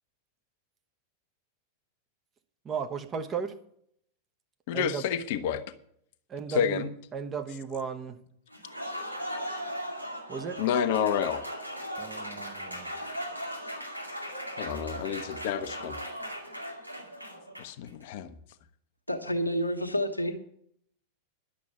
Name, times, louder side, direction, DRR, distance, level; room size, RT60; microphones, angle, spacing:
voice 1, 2.6-3.5 4.7-5.0 6.3-8.2 10.3-10.6 12.0-12.9, right 6 dB, 25° right, 5 dB, 1.2 m, -35 dB
voice 2, 4.7-5.6 6.5-6.9 10.6-11.4 14.6-16.0 17.6-18.3, left 8 dB, 50° left, 11 dB, 0.9 m, -29 dB
Applause, 8.5-17.9, equal, 90° right, 2.3 m, -38 dB
voice 3, 19.1-20.5, equal, 85° left, 5 dB, 1.3 m, -29 dB
11.0 x 7.2 x 8.4 m, 0.68 s
figure-of-eight pair, 90°, 0 cm